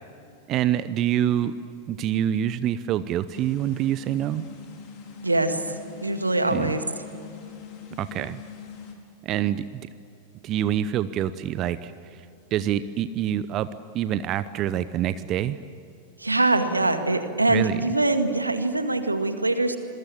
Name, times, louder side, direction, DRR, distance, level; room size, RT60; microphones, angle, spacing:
voice 1, 0.5-1.5 1.9-4.4 6.5-6.7 8.0-8.4 9.2-9.8 10.4-11.9 12.5-13.7 13.9-15.6 17.5-17.8, right 11 dB, 35° right, 14 dB, 0.8 m, -26 dB
sound 1, 3.3-8.9, left 6 dB, 40° left, 4.7 m, -43 dB
voice 2, 5.2-5.7 6.0-6.8 16.2-19.8, right 2 dB, 85° right, 8 dB, 2.0 m, -23 dB
27.0 x 23.0 x 8.6 m, 2.6 s
figure-of-eight pair, 90°, 0 cm